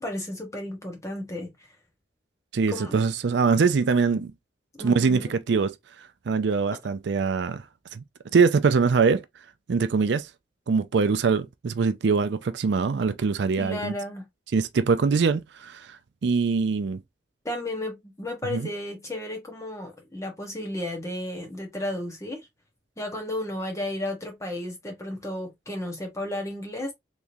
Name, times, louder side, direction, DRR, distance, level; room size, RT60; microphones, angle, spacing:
voice 1, 0.0-1.7 2.7-2.9 4.8-5.3 13.6-14.3 17.4-22.5 23.0-26.9, left 1 dB, 15° left, 1.2 m, -33 dB
voice 2, 2.5-4.3 4.8-7.6 7.9-8.0 8.3-9.2 9.7-10.3 10.7-13.9 14.5-16.0 16.2-17.0 18.5-18.7, right 5 dB, 65° right, 0.4 m, -23 dB
3.6 x 3.0 x 2.6 m
head